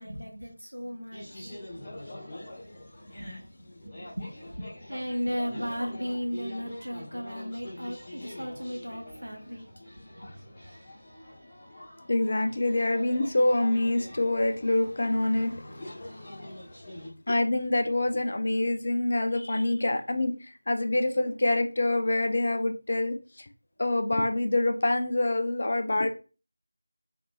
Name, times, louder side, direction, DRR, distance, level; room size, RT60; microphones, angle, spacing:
voice 1, 0.0-1.6 1.8-1.9 3.1-9.7 10.1-10.5, equal, 80° right, 0.9 m, -36 dB
sound 1, 1.1-17.1, left 1 dB, 10° left, 0.7 m, -45 dB
voice 2, 12.1-16.5 17.3-23.5 23.8-26.1, left 2 dB, 40° left, 0.3 m, -26 dB
2.8 x 2.4 x 2.2 m
figure-of-eight pair, 170°, 0 cm